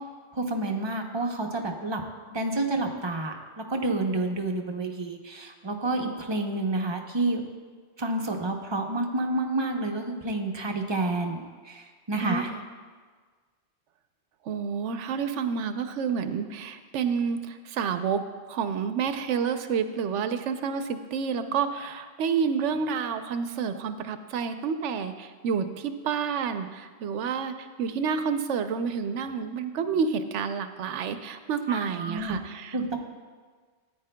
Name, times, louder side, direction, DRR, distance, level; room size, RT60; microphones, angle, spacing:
voice 1, 0.3-2.0 2.3-7.4 8.0-12.5 31.7-32.4 32.7-33.0, right 2 dB, 30° right, 3 dB, 0.6 m, -29 dB
voice 2, 12.2-12.6 14.4-18.2 18.5-33.0, right 6 dB, 90° right, 9 dB, 0.9 m, -29 dB
14.0 x 9.3 x 2.2 m, 1.5 s
omnidirectional pair, 1.2 m